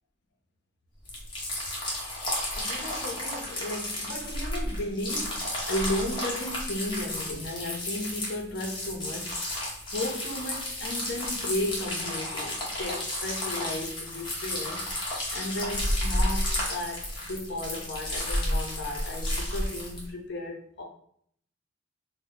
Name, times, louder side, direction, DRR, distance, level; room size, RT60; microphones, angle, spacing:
sound 1, 1.1-20.1, left 1 dB, 25° left, 0.8 m, -32 dB
voice 1, 2.5-9.3 9.9-14.9 15.3-20.8, left 1 dB, 60° left, 1 dB, 0.6 m, -34 dB
2.7 x 2.1 x 3.6 m, 0.64 s
head